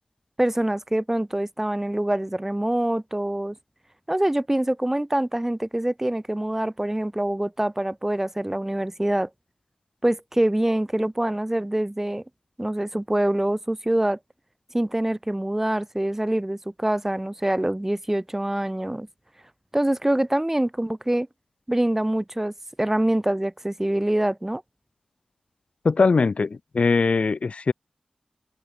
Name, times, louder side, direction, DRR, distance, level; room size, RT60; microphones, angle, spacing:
voice 1, 0.4-3.6 4.1-9.3 10.0-12.2 12.6-14.2 14.7-19.1 19.7-21.3 21.7-22.5 22.8-24.6, right 1 dB, 15° right, 2.8 m, -25 dB
voice 2, 25.8-27.7, left 4 dB, 65° left, 1.2 m, -21 dB
open air
wide cardioid pair, 75°, 2 cm